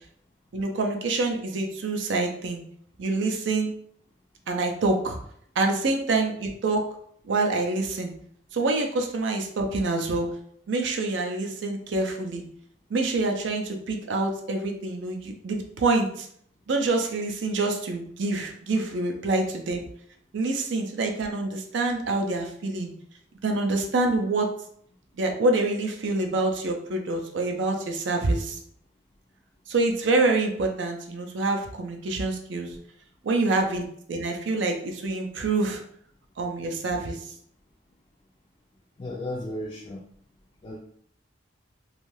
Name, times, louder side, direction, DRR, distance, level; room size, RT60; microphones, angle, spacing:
voice 1, 0.5-2.6 3.0-3.7 4.5-5.2 5.6-6.8 7.3-8.1 8.5-10.3 10.7-12.4 12.9-16.3 16.7-19.9 20.3-22.9 23.4-24.5 25.2-28.6 29.7-32.8 33.2-35.8 36.4-37.2, right 2 dB, 75° right, 3 dB, 0.4 m, -26 dB
voice 2, 39.0-40.0 40.6-40.8, left 1 dB, 30° left, -4 dB, 0.4 m, -34 dB
2.6 x 2.3 x 3.1 m, 0.63 s
head